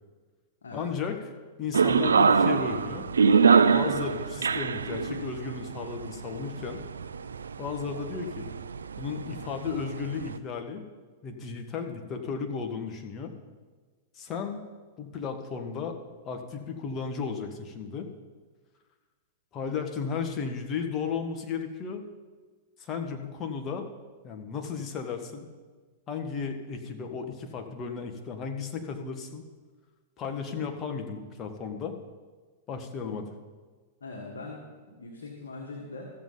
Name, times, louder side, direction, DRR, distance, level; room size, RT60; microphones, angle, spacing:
voice 1, 0.7-1.2 1.6-3.0 3.7-6.8 7.6-8.5 9.0-10.8 11.2-13.3 14.1-14.6 15.0-16.0 16.2-18.1 19.5-22.0 22.8-23.9 24.2-25.5 26.1-29.4 30.2-31.9 32.7-33.3, left 6 dB, 30° left, 4 dB, 1.5 m, -34 dB
sound 1, 1.7-10.4, right 5 dB, 85° right, 0.4 m, -25 dB
voice 2, 34.0-36.1, left 3 dB, 80° left, -1 dB, 1.6 m, -41 dB
15.0 x 7.3 x 4.0 m, 1.4 s
hypercardioid pair, 105°, 0 cm